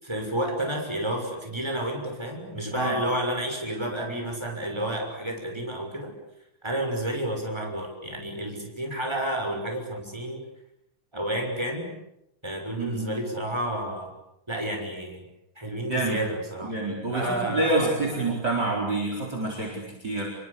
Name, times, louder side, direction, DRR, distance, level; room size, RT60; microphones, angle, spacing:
voice 1, 0.0-6.1 6.6-10.4 11.1-11.9 12.4-14.1 14.5-15.2 15.6-16.7 17.1-18.2, right 1 dB, 5° right, 2 dB, 6.3 m, -30 dB
voice 2, 12.7-13.1 15.9-16.2 16.6-20.3, right 2 dB, 30° right, 0 dB, 5.1 m, -27 dB
28.0 x 24.0 x 8.5 m, 0.83 s
omnidirectional pair, 3.8 m